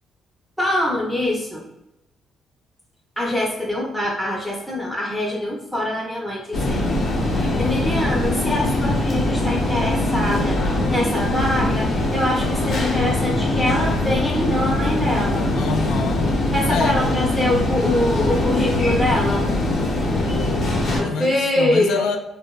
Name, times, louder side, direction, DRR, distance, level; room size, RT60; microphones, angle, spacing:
voice 1, 0.6-1.6 3.2-6.9 7.3-15.5 16.5-19.5 20.9-22.1, left 1 dB, ahead, -3 dB, 0.5 m, -24 dB
sound 1, 6.5-21.0, left 2 dB, 65° left, 0.7 m, -22 dB
voice 2, 15.5-16.3 16.7-17.0 20.9-22.2, left 5 dB, 80° left, 5 dB, 0.3 m, -26 dB
3.2 x 2.1 x 2.2 m, 0.89 s
cardioid pair, 90°, 0 cm